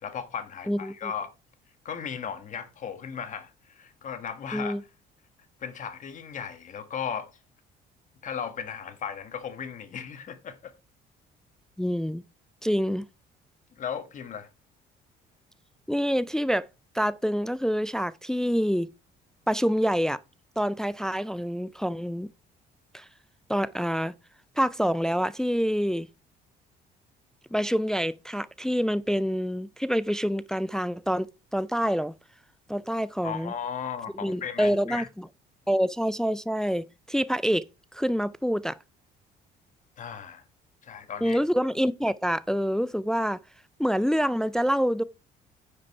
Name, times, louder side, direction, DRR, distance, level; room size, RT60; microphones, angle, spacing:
voice 1, 0.0-1.3 1.8-4.8 5.6-7.3 8.2-10.7 13.8-14.5 33.2-35.1 40.0-40.4 40.8-41.4, left 7 dB, 50° left, 1.4 m, -36 dB
voice 2, 0.7-1.1 4.5-4.8 11.8-12.2 12.6-13.1 15.9-16.6 16.9-18.9 19.5-20.2 20.6-22.3 22.9-23.1 23.5-24.1 24.6-26.1 27.5-31.3 31.5-32.1 32.7-33.5 34.2-35.3 35.7-37.6 37.9-38.8 41.2-43.4 43.8-45.0, equal, 5° left, 0.4 m, -26 dB
9.7 x 5.2 x 4.7 m
cardioid pair, 110°, 17 cm